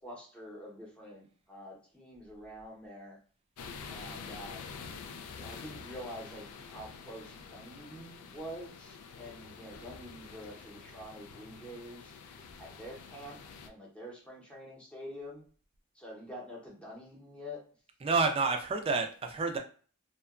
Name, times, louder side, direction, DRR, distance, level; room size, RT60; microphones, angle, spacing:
voice 1, 0.0-3.2 3.9-4.9 5.3-12.1 12.6-13.4 13.6-15.4 15.9-17.6, equal, 5° left, 0.7 m, -47 dB
sound 1, 3.6-13.7, left 5 dB, 85° left, 0.4 m, -47 dB
voice 2, 18.0-19.6, right 4 dB, 25° right, 0.3 m, -29 dB
2.8 x 2.2 x 2.3 m
head